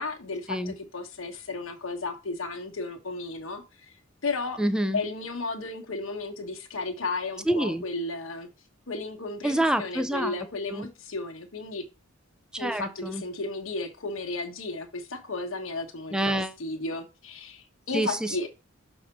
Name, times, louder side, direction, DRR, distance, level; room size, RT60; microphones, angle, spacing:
voice 1, 0.0-4.0 4.2-4.6 4.9-8.5 8.9-11.8 12.6-16.2 16.6-18.5, left 3 dB, 80° left, 1.3 m, -34 dB
voice 2, 4.6-5.0 7.5-7.8 9.4-10.3 10.7-10.9 12.5-13.2 16.1-16.6 17.9-18.5, right 1 dB, 5° right, 0.6 m, -27 dB
6.4 x 4.2 x 4.5 m
head